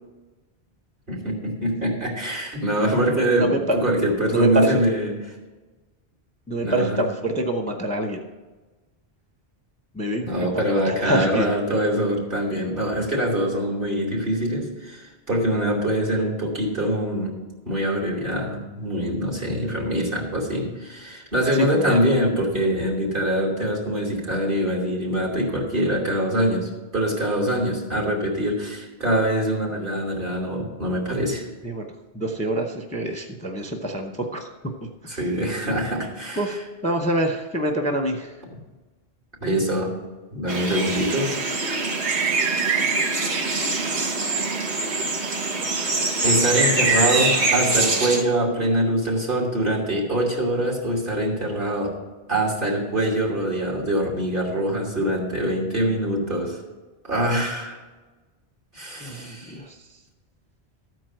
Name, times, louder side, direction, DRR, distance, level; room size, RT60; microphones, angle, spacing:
voice 1, 1.1-3.5 3.8-5.1 6.6-7.0 10.2-17.3 17.6-31.4 35.1-36.4 39.4-39.9 40.3-41.3 44.7-45.2 46.2-51.9 52.3-56.6 57.0-57.8 58.7-59.6, right 1 dB, 50° right, -4 dB, 2.9 m, -24 dB
voice 2, 3.3-3.8 4.3-4.8 6.5-8.2 9.9-11.5 21.5-22.0 31.6-31.9 32.1-34.5 35.0-35.2 36.4-38.3 59.0-59.9, right 1 dB, 10° left, 3 dB, 0.7 m, -26 dB
sound 1, 40.5-48.2, right 3 dB, 80° right, 1.4 m, -23 dB
13.5 x 4.6 x 7.7 m, 1.2 s
omnidirectional pair, 1.1 m